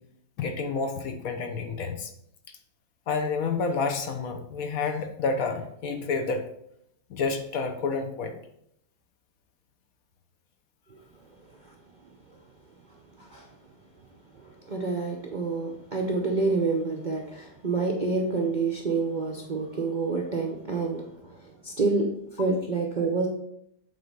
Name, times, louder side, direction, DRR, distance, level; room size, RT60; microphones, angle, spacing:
voice 1, 0.4-2.1 3.1-6.4 7.1-8.3, left 4 dB, 65° left, 5 dB, 1.1 m, -29 dB
voice 2, 14.3-23.3, right 3 dB, 45° right, 0 dB, 0.6 m, -28 dB
7.6 x 3.4 x 5.2 m, 0.73 s
omnidirectional pair, 1.7 m